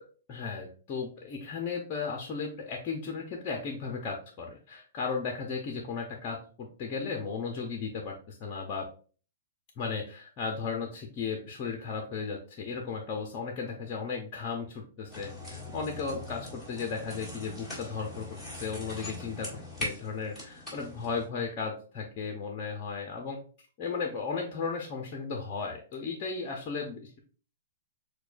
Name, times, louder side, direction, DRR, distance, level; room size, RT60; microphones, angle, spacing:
voice 1, 0.3-8.9 9.8-19.5 19.8-23.4 23.8-27.2, left 5 dB, 30° left, 2 dB, 0.7 m, -35 dB
sound 1, 15.1-21.3, left 2 dB, ahead, 2.1 m, -41 dB
6.7 x 2.2 x 2.5 m, 0.40 s
hypercardioid pair, 150°, 0 cm